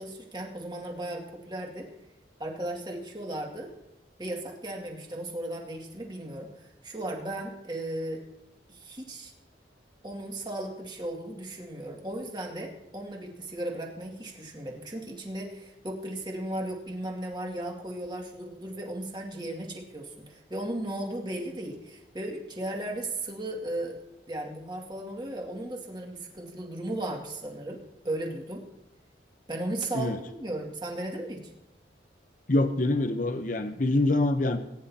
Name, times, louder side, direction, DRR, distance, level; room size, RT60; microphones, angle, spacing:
voice 1, 0.0-1.9 2.4-3.7 4.2-8.2 8.7-9.3 10.0-24.0 24.3-27.8 28.0-28.6 29.5-31.5, right 1 dB, 25° right, 0 dB, 2.2 m, -36 dB
voice 2, 32.5-34.6, left 2 dB, 45° left, 8 dB, 0.8 m, -25 dB
20.0 x 10.5 x 2.9 m, 0.94 s
head